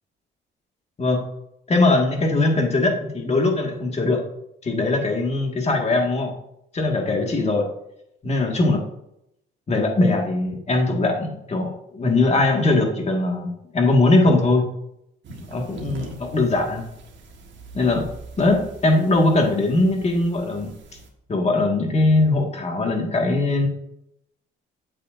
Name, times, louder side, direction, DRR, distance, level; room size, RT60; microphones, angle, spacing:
voice 1, 1.7-4.2 4.6-6.3 6.7-7.7 8.2-8.8 9.7-14.7 15.5-16.9 17.7-18.1 18.4-20.7 21.3-23.7, left 2 dB, 35° left, 1 dB, 1.9 m, -20 dB
sound 1, 15.2-21.1, right 3 dB, 65° right, 1.5 m, -42 dB
8.3 x 7.7 x 2.6 m, 0.80 s
cardioid pair, 90°, 20 cm